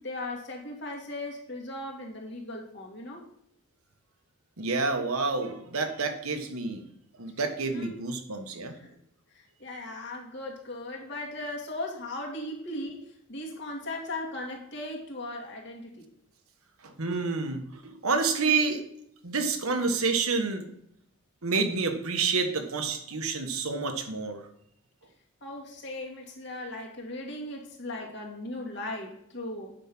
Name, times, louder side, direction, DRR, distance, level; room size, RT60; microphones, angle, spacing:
voice 1, 0.0-3.2 7.7-8.0 8.8-8.9 9.3-16.1 25.4-29.7, left 1 dB, 50° left, -1 dB, 2.2 m, -38 dB
voice 2, 4.6-6.8 7.2-8.8 16.8-18.8 19.2-20.7 21.4-24.4, right 4 dB, 80° right, 6 dB, 1.3 m, -28 dB
9.1 x 5.4 x 6.1 m, 0.73 s
head